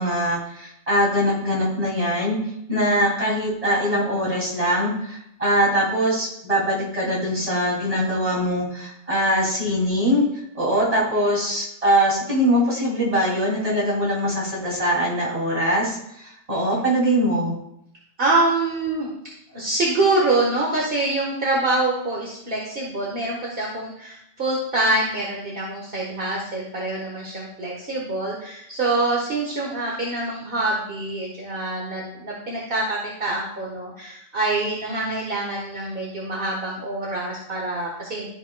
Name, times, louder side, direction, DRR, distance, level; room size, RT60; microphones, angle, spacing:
voice 1, 0.0-2.4 2.7-10.2 10.5-16.0 16.2-17.6, equal, 35° right, -4 dB, 3.0 m, -22 dB
voice 2, 18.2-19.1 19.5-38.3, right 2 dB, 60° right, -4 dB, 1.6 m, -25 dB
13.0 x 5.9 x 2.3 m, 0.75 s
omnidirectional pair, 1.0 m